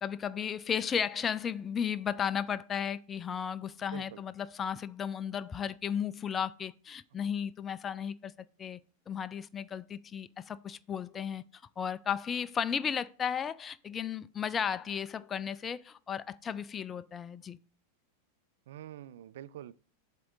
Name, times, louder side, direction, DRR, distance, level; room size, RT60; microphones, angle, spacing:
voice 1, 0.0-8.3 8.6-8.8 9.1-11.4 11.8-17.6, left 7 dB, 20° left, 0.3 m, -34 dB
voice 2, 3.9-4.2 18.7-19.7, right 11 dB, 55° right, 0.3 m, -46 dB
7.6 x 3.6 x 4.0 m
figure-of-eight pair, 90°, 0 cm